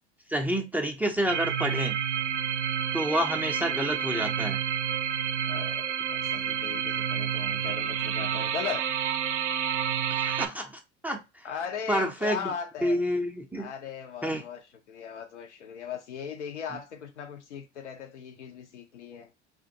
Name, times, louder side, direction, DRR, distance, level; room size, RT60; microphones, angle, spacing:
voice 1, 0.3-2.0 2.9-4.6 10.1-11.5 11.9-12.5 12.8-13.7 14.2-14.4, equal, 5° right, 0.4 m, -29 dB
sound 1, 1.3-10.5, right 8 dB, 80° right, 0.5 m, -29 dB
voice 2, 5.4-8.9 11.4-13.0 13.6-14.6 14.9-19.3, left 7 dB, 80° left, 0.7 m, -38 dB
2.6 x 2.4 x 2.6 m
figure-of-eight pair, 75°, 34 cm